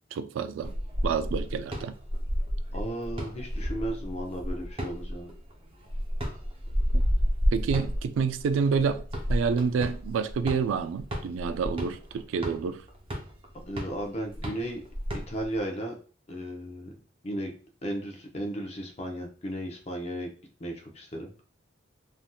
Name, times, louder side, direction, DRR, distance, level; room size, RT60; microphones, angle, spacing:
voice 1, 0.1-0.7 1.0-1.9 6.9-7.0 7.5-9.0 9.3-12.8, right 5 dB, 80° right, 0.3 m, -28 dB
sound 1, 0.6-15.6, equal, 30° right, 0.6 m, -31 dB
voice 2, 2.7-5.3 13.5-14.8 15.1-16.0 16.3-16.9 17.2-17.5 17.8-20.3 20.6-21.3, right 1 dB, 35° left, 0.6 m, -35 dB
3.4 x 2.6 x 2.2 m
head